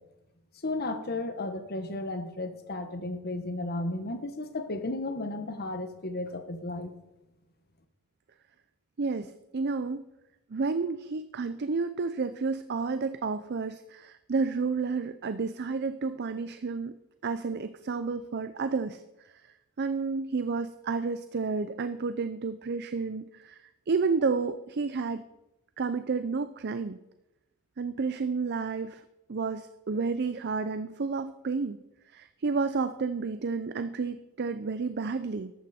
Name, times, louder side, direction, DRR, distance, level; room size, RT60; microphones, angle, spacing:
voice 1, 0.6-6.9, left 2 dB, 45° left, 8 dB, 1.3 m, -34 dB
voice 2, 9.0-10.1 10.5-17.0 17.2-19.5 19.8-25.2 25.8-27.0 27.8-29.0 29.3-31.8 32.1-35.5, right 4 dB, 50° right, 12 dB, 0.5 m, -31 dB
14.0 x 11.5 x 4.3 m, 0.95 s
head